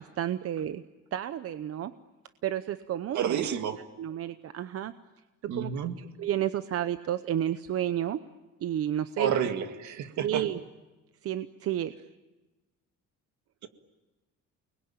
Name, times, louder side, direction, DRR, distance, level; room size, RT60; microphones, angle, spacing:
voice 1, 0.2-0.8 1.1-1.9 2.4-3.5 4.0-4.9 5.6-5.7 6.0-8.2 8.6-9.3 10.2-10.6 11.2-11.9, right 11 dB, 50° right, 11 dB, 0.8 m, -31 dB
voice 2, 3.1-3.8 5.5-6.0 9.2-10.5, right 8 dB, 65° right, 7 dB, 2.1 m, -29 dB
29.5 x 21.0 x 8.9 m, 1.1 s
cardioid pair, 175°, 31 cm